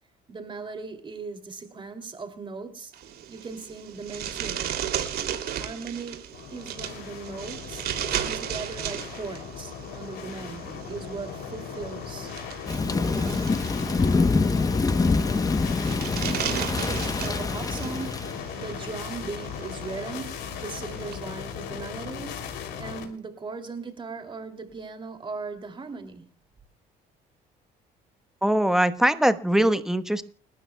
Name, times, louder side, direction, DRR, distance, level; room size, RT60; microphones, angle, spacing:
voice 1, 0.3-2.9 3.3-4.7 5.5-6.2 6.5-7.9 8.1-12.4 12.9-13.7 16.4-26.2, right 4 dB, 30° right, 2.7 m, -38 dB
sound 1, 2.9-21.1, right 9 dB, 65° right, 2.8 m, -36 dB
sound 2, 6.3-23.1, left 7 dB, 85° left, 3.0 m, -38 dB
Thunder / Rain, 12.7-18.4, left 3 dB, 20° left, 0.9 m, -25 dB
voice 2, 28.4-30.2, right 1 dB, 5° right, 1.1 m, -22 dB
30.0 x 12.5 x 2.3 m
cardioid pair, 110°, 17 cm